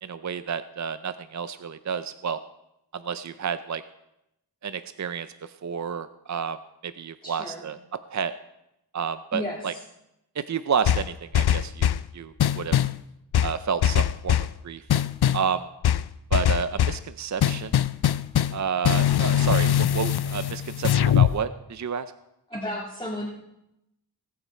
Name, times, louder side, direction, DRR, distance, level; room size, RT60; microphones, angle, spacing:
voice 1, 0.0-2.4 2.9-3.8 4.6-7.8 8.1-8.3 8.9-9.7 10.4-12.8 13.4-14.4 14.6-14.8 15.3-15.7 16.3-17.7 18.5-22.1, right 6 dB, 45° right, 12 dB, 0.5 m, -30 dB
voice 2, 7.2-7.6 9.3-9.8 22.5-23.3, left 1 dB, 15° left, -5 dB, 1.9 m, -33 dB
sound 1, 10.9-12.1 12.4-13.0 13.3-14.5 14.9-15.5 15.8-17.0 17.4-18.6 18.8-21.4, left 10 dB, 75° left, 0.5 m, -22 dB
20.0 x 8.1 x 4.3 m, 0.87 s
wide cardioid pair, 75°, 39 cm